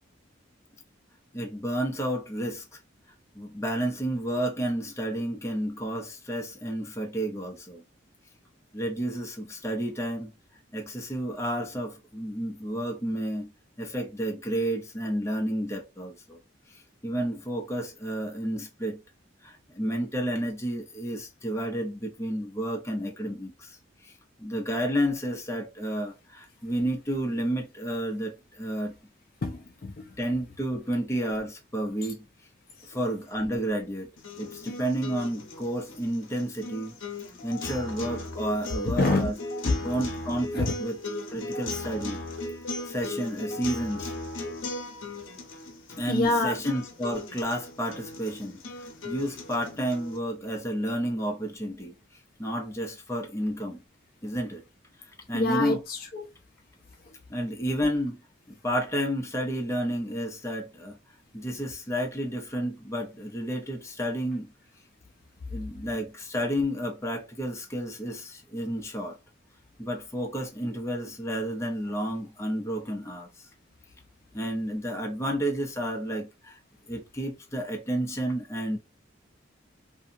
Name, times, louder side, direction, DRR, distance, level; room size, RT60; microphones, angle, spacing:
voice 1, 1.3-2.8 3.3-7.8 8.7-10.3 10.7-13.5 13.8-16.4 16.7-19.0 19.4-23.8 24.0-24.1 24.4-28.9 30.2-32.2 32.9-34.1 34.4-37.0 37.4-39.3 39.8-41.0 41.3-42.2 42.9-44.1 46.0-51.9 52.4-53.8 54.2-54.6 55.3-55.8 57.3-58.2 58.5-61.0 61.3-64.5 65.5-69.2 69.8-73.3 74.3-76.6 76.9-78.8, equal, 15° left, 0.7 m, -31 dB
voice 2, 29.4-30.1 32.8-33.0 38.8-39.3 39.6-40.0 40.5-40.7 45.2-45.3 46.1-46.6 55.3-56.3 57.0-57.1, left 2 dB, 50° left, 0.5 m, -27 dB
sound 1, 34.2-50.2, left 2 dB, 90° left, 0.7 m, -37 dB
2.7 x 2.3 x 2.6 m
head